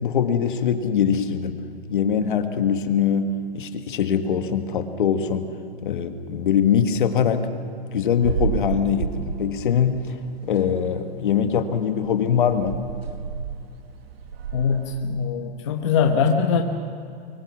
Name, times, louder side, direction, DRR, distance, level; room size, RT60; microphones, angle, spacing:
voice 1, 0.0-1.6 1.9-5.5 5.8-7.5 7.9-10.1 10.4-12.8, left 7 dB, 55° left, 7 dB, 1.6 m, -22 dB
sound 1, 8.2-10.1 10.5-10.6 11.1-11.2 11.5-11.7 12.0-15.0, right 7 dB, 70° right, 1.4 m, -31 dB
voice 2, 14.5-16.6, left 6 dB, 30° left, 3 dB, 1.0 m, -22 dB
24.0 x 21.5 x 6.2 m, 2.6 s
hypercardioid pair, 175°, 31 cm